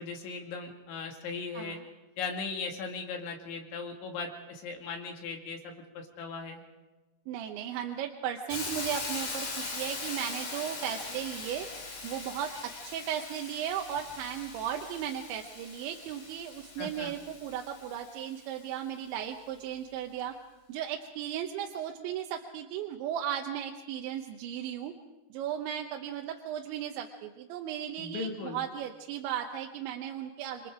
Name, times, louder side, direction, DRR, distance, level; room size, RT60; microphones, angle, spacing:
voice 1, 0.0-1.8 2.2-6.6 16.8-17.1 28.0-28.6, left 4 dB, 80° left, 2 dB, 4.9 m, -38 dB
voice 2, 7.3-11.7 12.0-20.4 20.7-24.9 25.3-30.7, right 10 dB, 80° right, 3 dB, 3.3 m, -36 dB
Hiss, 8.5-18.4, left 3 dB, 45° left, 5.0 m, -41 dB
28.0 x 24.5 x 5.0 m, 1.1 s
omnidirectional pair, 5.4 m